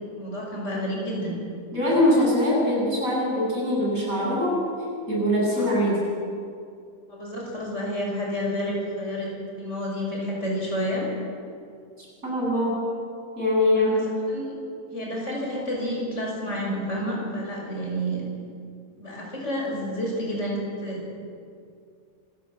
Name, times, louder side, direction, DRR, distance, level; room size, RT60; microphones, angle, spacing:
voice 1, 0.2-1.3 5.6-5.7 7.1-9.3 9.6-11.0 13.9-14.0 14.3-14.5 14.9-18.2 19.0-21.1, equal, 50° left, -2 dB, 7.0 m, -30 dB
voice 2, 1.7-4.6 5.1-6.0 12.0-12.8 13.4-14.0, left 1 dB, 65° right, -4 dB, 8.5 m, -22 dB
26.0 x 16.0 x 7.8 m, 2.3 s
omnidirectional pair, 1.6 m